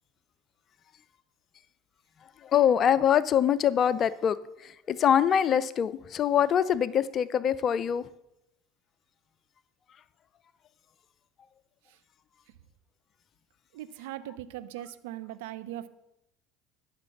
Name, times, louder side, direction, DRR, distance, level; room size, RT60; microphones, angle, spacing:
voice 1, 2.4-4.4 4.6-8.1, left 9 dB, 40° left, 16 dB, 0.4 m, -24 dB
voice 2, 13.7-15.9, right 13 dB, 70° right, 12 dB, 0.7 m, -39 dB
11.5 x 5.9 x 7.1 m, 0.88 s
hypercardioid pair, 70°, 0 cm